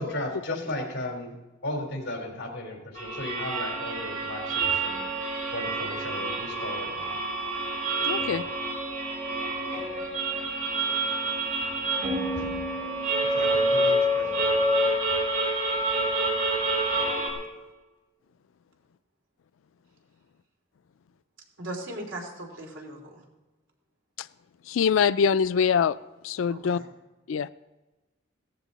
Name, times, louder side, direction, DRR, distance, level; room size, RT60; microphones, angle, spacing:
voice 1, 0.0-1.3 1.6-5.1 5.5-7.1 8.2-8.5 12.3-12.7 13.3-14.3, left 1 dB, 60° left, 2 dB, 3.5 m, -35 dB
sound 1, 2.9-17.3, right 1 dB, 40° right, 5.0 m, -27 dB
voice 2, 8.0-8.4 24.7-26.0 26.2-26.8 27.3-27.5, left 6 dB, 85° left, 15 dB, 0.4 m, -23 dB
voice 3, 21.6-23.2 26.5-26.9, right 1 dB, 70° right, 1 dB, 3.2 m, -38 dB
17.0 x 14.5 x 4.1 m, 1.1 s
head